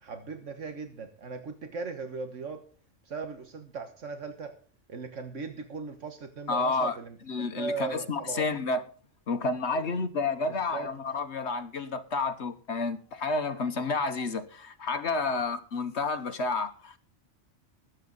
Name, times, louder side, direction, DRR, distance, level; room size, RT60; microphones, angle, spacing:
voice 1, 0.0-2.6 3.0-4.5 4.9-8.5 9.7-9.8 10.7-10.9 15.2-15.4, right 4 dB, 75° right, 1.7 m, -38 dB
voice 2, 6.5-7.0 7.3-8.8 9.3-17.0, left 3 dB, 65° left, 1.4 m, -30 dB
20.5 x 9.0 x 4.0 m
omnidirectional pair, 1.3 m